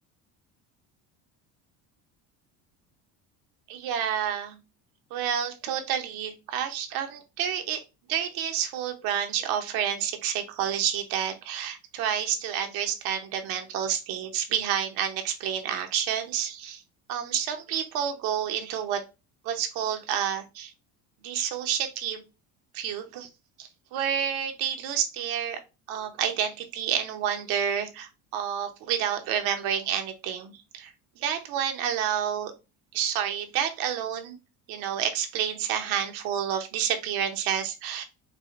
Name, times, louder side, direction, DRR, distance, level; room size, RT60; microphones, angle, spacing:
voice 1, 3.7-4.6 5.1-7.8 8.1-16.8 17.1-19.0 19.4-20.7 21.2-22.2 22.7-23.3 23.6-25.6 25.9-32.5 32.9-34.4 34.7-38.0, right 9 dB, 70° right, 6 dB, 0.7 m, -29 dB
4.8 x 2.0 x 2.4 m, 0.27 s
cardioid pair, 145°, 38 cm